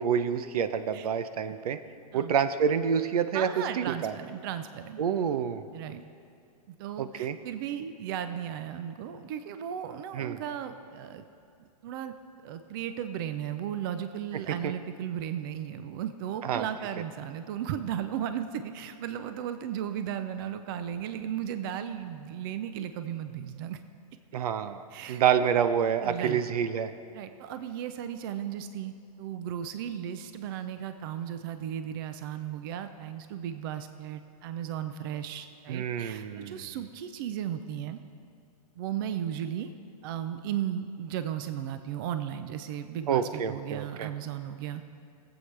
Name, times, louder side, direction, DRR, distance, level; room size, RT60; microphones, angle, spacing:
voice 1, 0.0-1.8 2.1-4.1 5.0-5.6 7.0-7.4 10.1-10.4 14.6-14.7 16.4-16.7 24.3-24.8 25.1-26.9 35.7-36.8 43.1-44.1, right 8 dB, 70° right, 12 dB, 0.6 m, -28 dB
voice 2, 3.3-5.0 5.7-6.0 6.7-11.2 11.8-12.1 12.4-23.8 24.9-25.5 26.0-26.4 27.1-38.0 38.8-39.7 40.0-44.9, right 10 dB, 35° right, 10 dB, 0.4 m, -35 dB
20.5 x 8.0 x 3.3 m, 2.4 s
hypercardioid pair, 155°, 20 cm